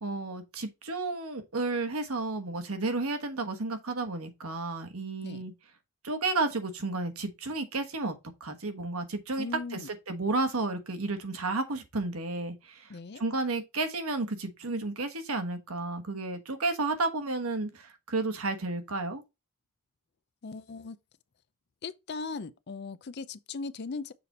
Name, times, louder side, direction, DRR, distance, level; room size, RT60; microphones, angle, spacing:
voice 1, 0.0-5.5 6.0-8.1 8.4-9.5 9.7-12.9 13.2-19.2, right 3 dB, 75° right, 1.2 m, -32 dB
voice 2, 9.4-9.9 12.9-13.2 20.4-21.0 21.8-24.1, left 4 dB, 50° left, 0.5 m, -38 dB
6.9 x 4.2 x 4.2 m
head